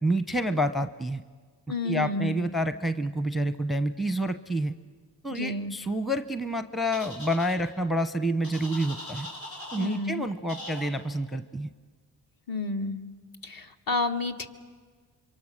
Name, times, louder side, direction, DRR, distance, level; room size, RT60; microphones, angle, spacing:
voice 1, 0.0-1.2 1.8-4.7 5.2-9.3 9.7-11.7, right 1 dB, ahead, 11 dB, 0.8 m, -28 dB
voice 2, 1.7-2.3 5.3-5.7 9.8-10.3 12.5-13.0 13.4-14.5, left 2 dB, 50° left, 5 dB, 1.7 m, -30 dB
sound 1, 6.9-7.5 8.4-10.0 10.5-10.9, left 1 dB, 80° left, 5.9 m, -40 dB
26.5 x 23.5 x 6.6 m, 1.5 s
supercardioid pair, 50°, 45 cm